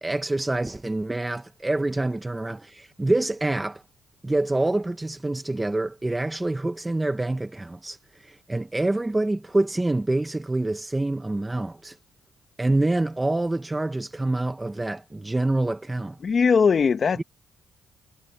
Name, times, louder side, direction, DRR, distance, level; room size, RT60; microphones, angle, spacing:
voice 1, 0.0-3.8 4.2-8.0 8.2-12.0 12.6-16.2 17.2-17.3, right 2 dB, 15° right, 1.3 m, -26 dB
voice 2, 16.2-17.2, left 5 dB, 45° left, 1.3 m, -20 dB
cardioid pair, 90°, 0 cm